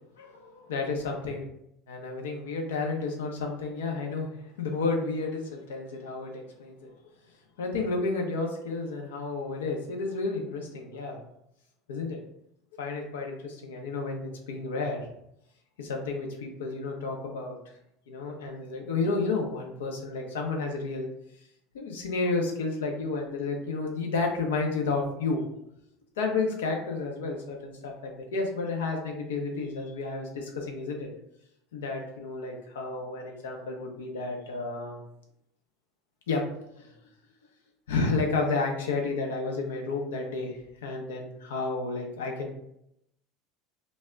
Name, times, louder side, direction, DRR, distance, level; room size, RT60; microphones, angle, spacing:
voice 1, 0.2-1.5 1.9-6.9 7.6-11.2 11.9-12.2 12.8-15.0 15.8-17.6 18.1-21.1 21.7-25.4 26.2-31.1 31.7-35.0 36.3-36.4 36.8-36.9 37.9-42.5, left 3 dB, 80° left, 1 dB, 0.6 m, -31 dB
2.2 x 2.0 x 3.6 m, 0.79 s
hypercardioid pair, 80°, 0 cm